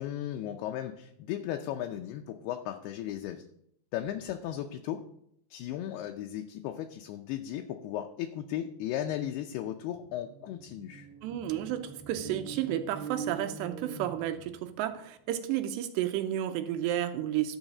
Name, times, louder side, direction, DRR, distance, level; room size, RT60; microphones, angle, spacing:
voice 1, 0.0-3.5 3.9-5.0 5.5-11.1, left 11 dB, 80° left, 4 dB, 2.4 m, -36 dB
sound 1, 9.8-14.9, right 4 dB, 60° right, 2.3 m, -44 dB
voice 2, 11.2-17.6, right 12 dB, 85° right, 8 dB, 2.8 m, -32 dB
12.0 x 4.0 x 7.2 m, 0.72 s
omnidirectional pair, 5.0 m